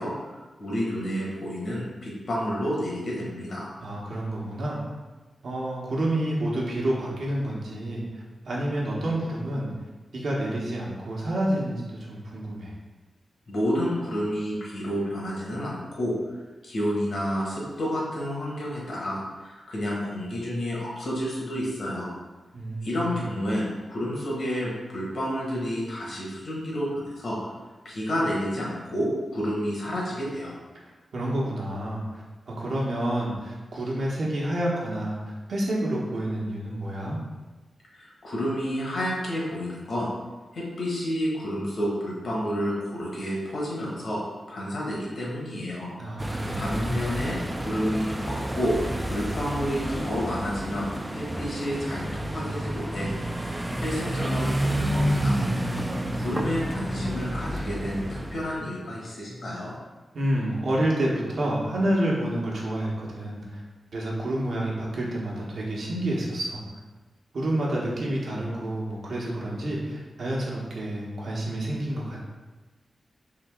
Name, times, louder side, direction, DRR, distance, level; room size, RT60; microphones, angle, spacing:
voice 1, 0.0-3.7 13.5-16.1 16.6-22.1 22.8-27.4 27.8-30.6 37.9-40.1 40.5-44.2 44.5-45.9 46.6-48.7 49.1-53.1 53.3-53.4 53.8-55.4 56.1-59.7, equal, 65° left, -4 dB, 1.4 m, -30 dB
voice 2, 3.8-4.8 5.4-8.0 8.4-9.7 10.1-12.7 22.5-23.2 31.1-37.2 46.0-46.9 55.2-56.3 60.1-63.6 63.9-66.6 67.3-72.2, right 1 dB, 65° right, -4 dB, 1.0 m, -29 dB
sound 1, 46.2-58.6, right 1 dB, 15° right, 0.3 m, -29 dB
3.7 x 2.9 x 3.5 m, 1.2 s
wide cardioid pair, 90°, 0 cm